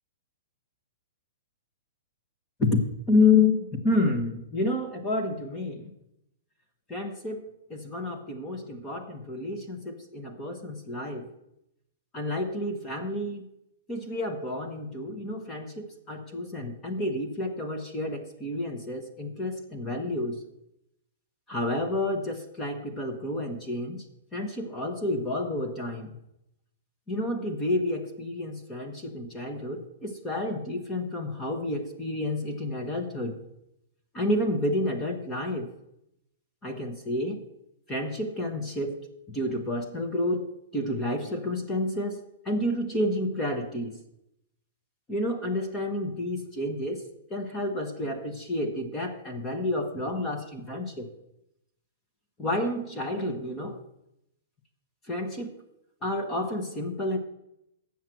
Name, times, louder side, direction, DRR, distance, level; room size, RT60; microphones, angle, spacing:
voice 1, 3.1-5.9 6.9-11.3 12.1-13.4 13.9-20.4 21.5-24.0 24.3-26.1 27.1-33.4 34.1-35.7 36.6-37.5 37.9-39.0 39.3-40.5 40.7-44.0 45.1-47.0 47.3-51.1 52.4-53.8 55.1-55.6 56.0-57.2, left 2 dB, 15° left, 5 dB, 1.0 m, -29 dB
9.1 x 7.2 x 7.5 m, 0.83 s
hypercardioid pair, 175°, 0 cm